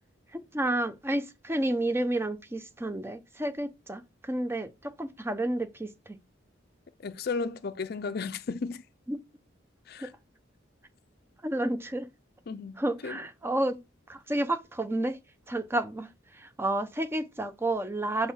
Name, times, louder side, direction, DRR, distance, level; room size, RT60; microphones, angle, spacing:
voice 1, 0.3-6.2 9.1-9.2 10.0-10.1 11.4-12.1 12.8-13.8 14.1-15.2 15.5-18.3, right 1 dB, 15° right, 0.6 m, -31 dB
voice 2, 7.0-8.8 9.9-10.1 12.5-13.2, left 4 dB, 55° left, 0.4 m, -34 dB
5.4 x 4.5 x 4.3 m
head